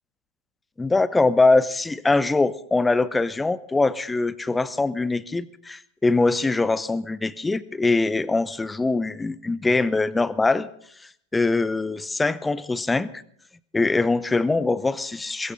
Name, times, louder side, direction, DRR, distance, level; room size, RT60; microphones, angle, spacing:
voice 1, 0.8-10.7 11.3-13.1 13.7-15.5, left 3 dB, 10° left, 19 dB, 0.6 m, -22 dB
21.5 x 16.0 x 3.9 m, 0.66 s
figure-of-eight pair, 90°, 0 cm